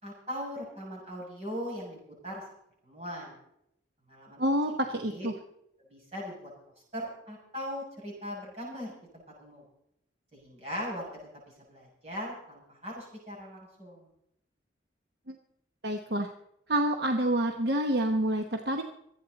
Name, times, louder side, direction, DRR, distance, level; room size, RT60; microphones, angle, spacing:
voice 1, 0.0-2.4 2.8-3.3 4.1-4.4 4.9-5.3 5.9-6.5 6.9-9.6 10.3-11.1 11.3-14.1, equal, 35° right, -3 dB, 6.8 m, -40 dB
voice 2, 4.4-5.3 15.3-15.4 15.8-16.3 16.7-18.8, right 1 dB, 65° right, 4 dB, 1.0 m, -28 dB
25.5 x 9.3 x 4.1 m, 0.75 s
head